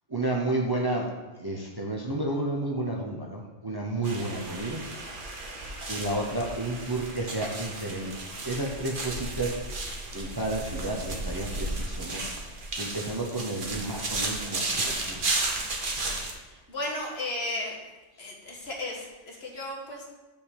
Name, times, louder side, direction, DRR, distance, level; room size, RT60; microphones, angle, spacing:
voice 1, 0.1-1.1 1.4-4.8 5.9-8.1 8.4-9.6 10.1-12.2 12.8-15.2, right 2 dB, 25° right, -1 dB, 0.7 m, -31 dB
sound 1, 4.0-16.3, right 2 dB, 45° right, 1.2 m, -34 dB
voice 2, 16.4-17.9 18.2-20.0, left 1 dB, 60° left, -1 dB, 1.6 m, -35 dB
5.7 x 5.3 x 6.5 m, 1.2 s
omnidirectional pair, 1.2 m